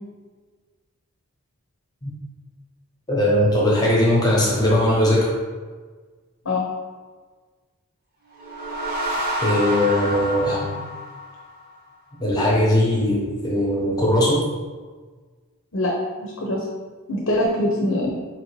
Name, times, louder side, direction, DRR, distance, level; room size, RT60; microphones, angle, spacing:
voice 1, 3.1-5.3 9.4-10.8 12.2-14.5, left 1 dB, 20° left, -4 dB, 0.8 m, -19 dB
sound 1, 8.3-11.8, equal, 45° right, 0.8 m, -28 dB
voice 2, 16.2-16.6 17.1-18.1, left 1 dB, 65° left, -3 dB, 0.7 m, -23 dB
4.4 x 2.7 x 3.0 m, 1.4 s
head